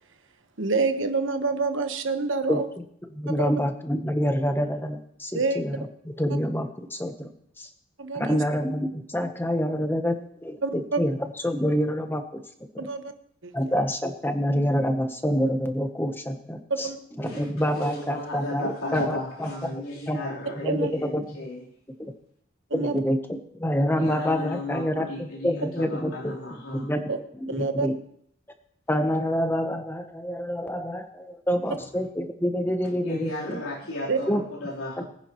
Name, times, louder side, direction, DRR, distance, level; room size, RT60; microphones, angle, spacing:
voice 1, 0.6-2.6 3.3-3.5 5.3-5.6 8.0-8.4 10.6-11.0 12.8-13.0 13.4-13.5 16.8-17.0 20.6-20.9 22.7-23.0 27.1-27.2 27.5-27.9 34.1-34.2, right 4 dB, 60° right, 7 dB, 1.2 m, -27 dB
voice 2, 3.1-7.3 7.6-7.7 8.1-12.4 12.7-12.9 13.5-16.9 17.2-20.2 20.6-21.5 22.0-22.1 22.7-27.9 28.9-33.6 34.3-34.4 35.0-35.1, equal, 10° left, 7 dB, 0.9 m, -27 dB
voice 3, 17.8-21.6 24.0-26.9 33.0-35.0, left 1 dB, 85° left, -4 dB, 3.7 m, -35 dB
22.5 x 10.0 x 3.1 m, 0.71 s
head